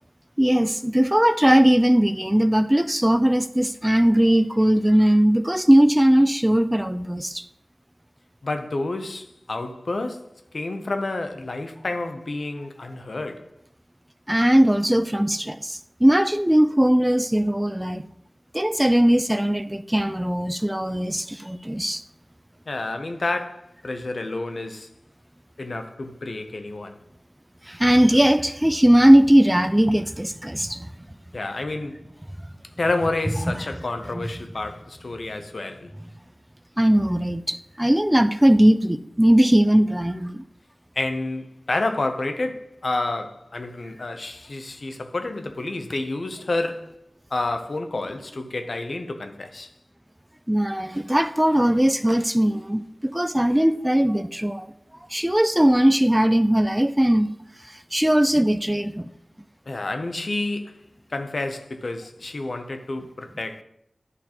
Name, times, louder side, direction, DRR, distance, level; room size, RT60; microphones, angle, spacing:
voice 1, 0.4-7.4 14.3-18.0 18.5-22.0 27.7-30.9 33.5-33.6 34.2-34.3 36.8-40.4 50.5-54.7 55.1-57.3 57.9-59.1, right 1 dB, 10° right, 0.3 m, -19 dB
voice 2, 8.4-13.5 22.7-24.9 25.6-27.0 31.3-32.1 32.8-35.9 41.0-49.7 59.7-60.8 61.1-63.6, left 2 dB, 70° left, 0.6 m, -29 dB
10.5 x 3.9 x 2.9 m
cardioid pair, 45°, 0 cm